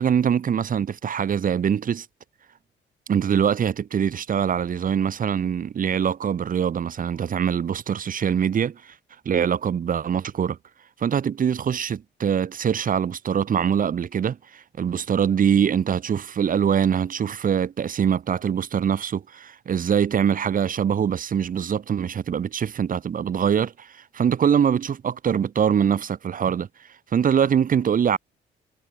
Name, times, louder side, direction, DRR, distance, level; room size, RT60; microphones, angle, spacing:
voice 1, 0.0-2.1 3.1-8.9 9.2-10.6 11.0-26.7 27.1-28.2, right 8 dB, 45° right, 0.9 m, -23 dB
cardioid pair, 90°, 20 cm